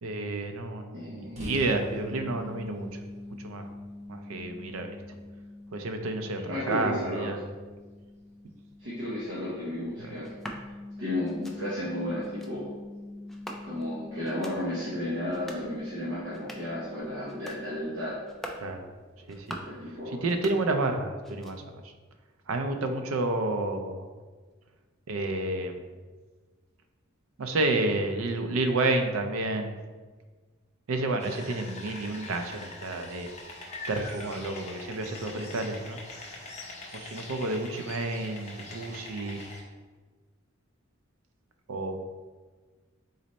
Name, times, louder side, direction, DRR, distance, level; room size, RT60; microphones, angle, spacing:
voice 1, 0.0-2.9 3.4-3.7 4.1-5.0 5.7-7.4 10.0-10.1 18.6-18.8 19.3-19.6 20.1-21.8 22.5-24.0 25.1-25.8 27.4-29.7 30.9-33.3 33.9-36.0 36.9-39.4 41.7-42.0, right 2 dB, 85° right, 6 dB, 0.5 m, -30 dB
voice 2, 0.9-1.4 6.5-7.3 8.8-10.3 11.0-12.8 13.6-18.2 19.6-20.3, left 1 dB, 60° right, -7 dB, 0.9 m, -33 dB
sound 1, 1.4-18.9, left 1 dB, 35° right, 0.9 m, -44 dB
sound 2, 10.2-10.6 11.2-11.6 12.2-12.5 13.3-13.9 14.2-14.6 15.2-15.7 16.2-16.8 17.2-17.6 18.2-18.7 19.2-19.8 20.2-21.0 21.2-21.8, equal, ahead, 0.4 m, -44 dB
sound 3, 31.2-39.6, left 2 dB, 35° left, 0.7 m, -43 dB
4.0 x 3.1 x 4.0 m, 1.4 s
head